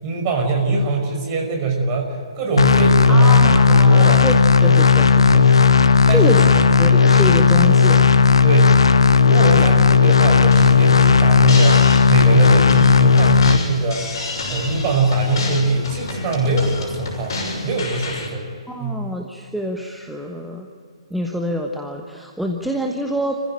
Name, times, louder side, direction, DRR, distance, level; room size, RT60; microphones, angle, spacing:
voice 1, 0.0-4.3 5.3-5.6 6.1-6.7 8.4-8.8 9.3-11.8 12.1-14.2 14.5-17.3 17.6-18.5 18.8-19.0, right 2 dB, 30° right, 2 dB, 5.7 m, -22 dB
sound 1, 2.6-13.6, left 5 dB, 65° left, 1.0 m, -13 dB
voice 2, 3.1-5.6 6.1-6.5 6.8-8.3 18.7-20.7 21.1-23.4, equal, ahead, 1 dB, 1.2 m, -26 dB
sound 2, 10.5-18.3, left 2 dB, 45° left, 6.5 m, -29 dB
27.0 x 15.5 x 9.2 m, 2.5 s
figure-of-eight pair, 130°, 3 cm